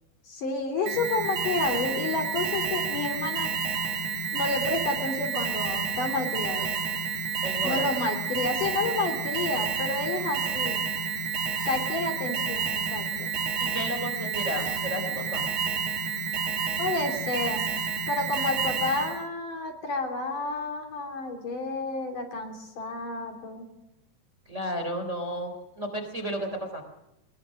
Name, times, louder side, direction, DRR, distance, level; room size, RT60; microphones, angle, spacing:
voice 1, 0.3-3.5 4.3-6.8 7.6-10.9 11.6-13.3 16.8-17.7 18.1-23.7, left 3 dB, 50° left, 4 dB, 4.4 m, -30 dB
Alarm, 0.9-19.3, right 5 dB, 40° right, 3.0 m, -30 dB
voice 2, 7.4-7.9 13.6-15.5 24.5-26.8, equal, 15° right, 5 dB, 3.5 m, -33 dB
24.0 x 22.5 x 6.5 m, 0.87 s
omnidirectional pair, 5.2 m